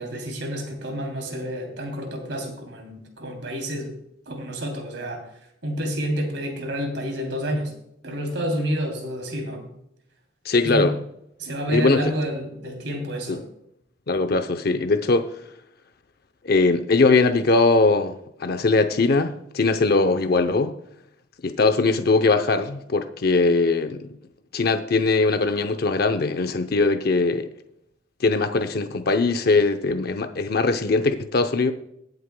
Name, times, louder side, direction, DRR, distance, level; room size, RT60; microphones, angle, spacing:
voice 1, 0.0-3.9 4.3-5.2 5.6-7.7 8.0-9.7 10.6-10.9 11.4-13.4, equal, 70° right, 3.0 m, -29 dB
voice 2, 10.4-10.9 11.7-12.1 13.3-13.4 14.1-15.3 16.4-20.7 21.4-24.1 24.5-27.5 28.2-31.7, left 3 dB, 55° left, 0.7 m, -21 dB
22.5 x 8.0 x 2.2 m
head